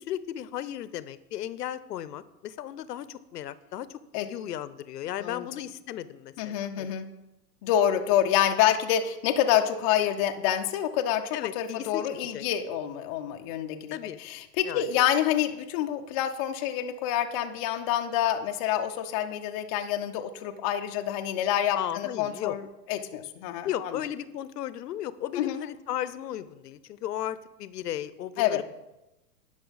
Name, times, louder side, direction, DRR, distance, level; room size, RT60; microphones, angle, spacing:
voice 1, 0.0-6.9 11.3-12.0 12.3-12.4 13.9-14.2 14.6-14.9 21.7-22.6 23.6-28.6, left 11 dB, 85° left, 16 dB, 0.6 m, -35 dB
voice 2, 6.4-7.1 7.6-24.0 25.4-25.6 28.4-28.6, left 11 dB, 25° left, 5 dB, 0.3 m, -27 dB
10.5 x 5.4 x 4.0 m, 0.96 s
hypercardioid pair, 120°, 47 cm